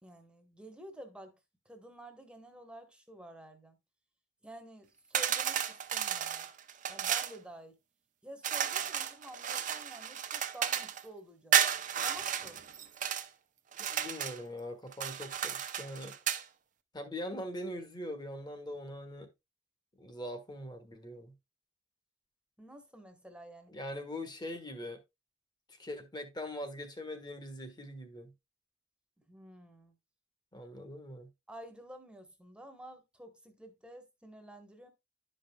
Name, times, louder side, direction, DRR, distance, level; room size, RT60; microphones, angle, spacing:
voice 1, 0.0-1.4 1.6-3.8 4.4-6.5 6.9-7.8 8.2-11.6 12.0-12.6 22.6-23.7 29.3-30.0 31.5-34.9, right 1 dB, 5° right, 1.1 m, -50 dB
sound 1, 5.1-7.4 8.4-11.0 11.5-13.3 13.7-14.4 14.9-16.4, right 9 dB, 45° right, 0.6 m, -33 dB
voice 2, 13.8-16.1 16.9-19.3 20.0-21.3 23.7-25.0 25.7-28.3 30.5-31.3, left 1 dB, 25° left, 1.3 m, -42 dB
11.5 x 5.3 x 2.2 m
head